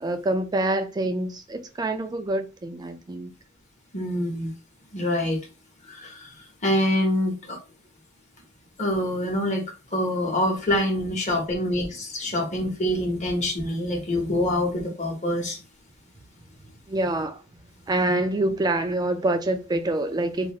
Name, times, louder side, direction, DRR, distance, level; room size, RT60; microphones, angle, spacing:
voice 1, 0.0-3.3 16.9-17.4 17.9-20.5, right 2 dB, 20° right, 0.3 m, -26 dB
voice 2, 3.9-4.5 4.9-5.4 5.9-6.3 6.6-7.6 8.8-9.6 9.9-15.6, left 1 dB, 35° left, 0.9 m, -25 dB
2.4 x 2.3 x 2.9 m
head